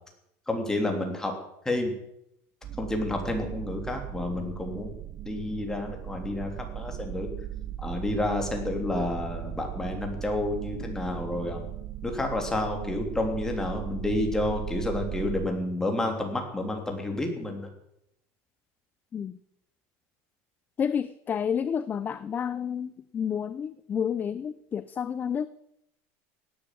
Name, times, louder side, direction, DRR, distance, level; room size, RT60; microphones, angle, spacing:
voice 1, 0.5-1.3 1.6-1.9 2.8-4.9 5.2-6.5 6.7-7.3 7.8-11.7 12.0-17.6, left 2 dB, 10° left, 2 dB, 3.3 m, -30 dB
sound 1, 2.6-15.5, right 12 dB, 40° right, 1.0 m, -37 dB
voice 2, 20.8-25.5, left 7 dB, 25° left, 15 dB, 0.5 m, -30 dB
17.5 x 10.0 x 7.6 m, 0.79 s
supercardioid pair, 140°, 7 cm